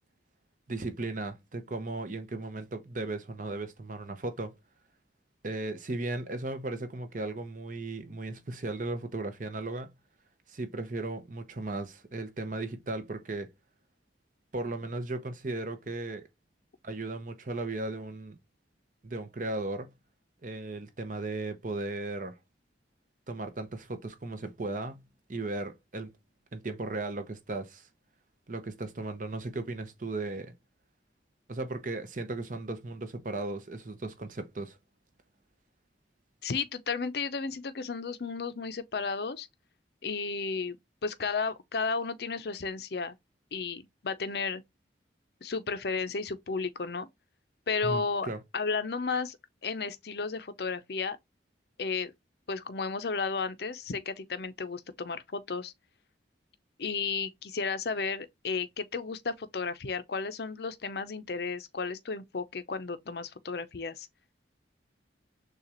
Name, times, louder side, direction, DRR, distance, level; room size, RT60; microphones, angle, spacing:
voice 1, 0.7-4.5 5.4-9.9 10.5-13.5 14.5-16.2 16.8-18.4 19.0-19.9 20.4-22.4 23.3-25.0 25.3-26.1 26.5-27.9 28.5-30.5 31.5-34.8 47.8-48.4, right 2 dB, 45° right, 0.7 m, -36 dB
voice 2, 36.4-39.5 40.0-40.8 41.0-43.2 43.5-44.6 45.4-47.1 47.7-48.3 48.5-49.4 49.6-51.2 51.8-52.1 52.5-55.7 56.8-64.1, left 4 dB, 60° left, 0.6 m, -33 dB
6.5 x 2.4 x 2.9 m
head